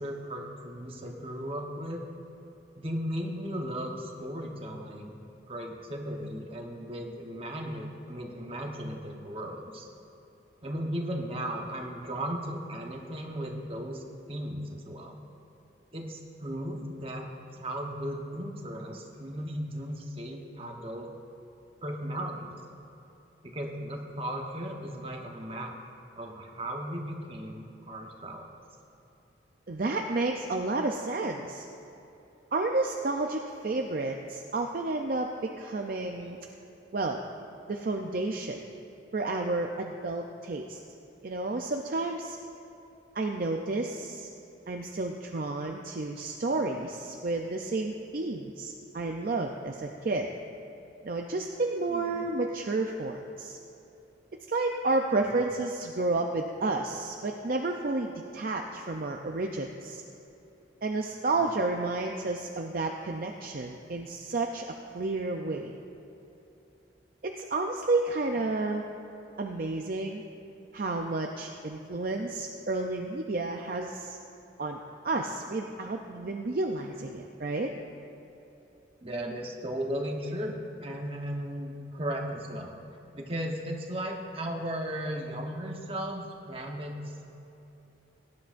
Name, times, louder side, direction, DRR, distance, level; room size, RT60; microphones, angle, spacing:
voice 1, 0.0-2.0 2.8-9.9 10.6-14.0 14.3-15.2 15.9-17.2 17.5-21.1 21.8-22.5 23.4-25.7 26.2-28.4 51.9-52.3 55.2-55.4 61.4-61.7 79.0-82.7 83.1-87.2, equal, 30° right, 1 dB, 1.0 m, -36 dB
voice 2, 29.7-31.7 32.5-36.4 36.9-37.2 37.7-38.6 39.1-40.8 41.2-42.4 43.1-44.3 44.7-50.3 51.0-53.6 54.5-60.0 60.8-65.7 67.2-68.8 69.4-70.2 70.7-74.2 74.6-74.8 75.0-77.7, right 2 dB, 45° right, 3 dB, 0.5 m, -31 dB
18.0 x 10.5 x 2.6 m, 3.0 s
head